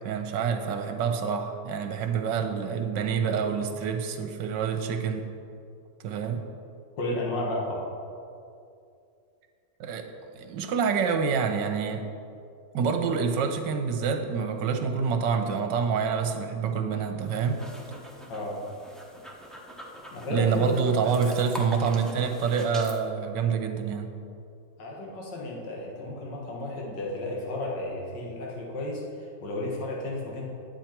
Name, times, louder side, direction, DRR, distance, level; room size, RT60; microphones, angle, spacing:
voice 1, 0.0-5.3 6.0-6.4 9.8-10.1 10.3-12.0 12.7-17.6 20.3-24.1, right 6 dB, 80° right, 6 dB, 1.4 m, -27 dB
voice 2, 7.0-7.9 18.3-18.6 20.1-20.7 21.0-21.3 24.8-30.5, left 2 dB, 75° left, -2 dB, 2.1 m, -33 dB
sound 1, 17.2-23.0, equal, ahead, 0.3 m, -43 dB
10.5 x 8.2 x 4.4 m, 2.5 s
omnidirectional pair, 1.9 m